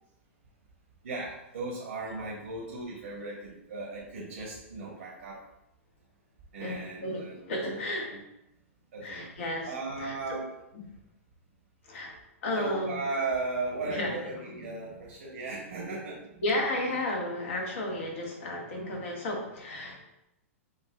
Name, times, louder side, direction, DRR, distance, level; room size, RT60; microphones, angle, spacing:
voice 1, 1.0-5.4 6.5-7.4 7.7-7.8 8.1-8.2 8.9-9.4 9.7-10.5 12.6-16.4, right 3 dB, 70° right, -3 dB, 1.2 m, -36 dB
voice 2, 6.6-8.1 9.0-10.1 11.8-13.0 13.9-14.2 16.4-20.0, left 1 dB, 60° left, 0 dB, 1.4 m, -33 dB
6.7 x 2.5 x 2.3 m, 0.85 s
figure-of-eight pair, 105°, 8 cm